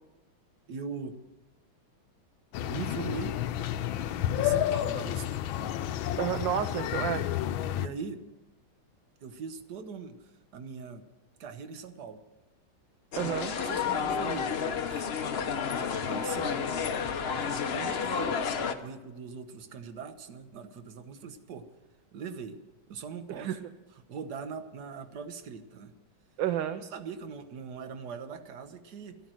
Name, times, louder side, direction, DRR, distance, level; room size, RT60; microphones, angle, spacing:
voice 1, 0.7-1.2 2.7-3.4 4.3-5.3 5.6-5.7 7.7-8.2 9.2-11.0 11.4-12.2 13.3-14.5 14.9-15.1 16.0-16.6 17.7-21.7 22.1-22.6 22.9-23.6 24.1-25.9 26.8-29.2, right 5 dB, 60° right, 9 dB, 1.5 m, -41 dB
sound 1, 2.5-7.9, left 12 dB, 80° left, 1.4 m, -30 dB
voice 2, 6.2-7.3 13.2-13.5 23.3-23.6 26.4-26.8, right 10 dB, 75° right, 10 dB, 1.3 m, -30 dB
sound 2, 13.1-18.7, left 6 dB, 60° left, 0.6 m, -31 dB
13.0 x 13.0 x 6.3 m, 1.1 s
omnidirectional pair, 2.2 m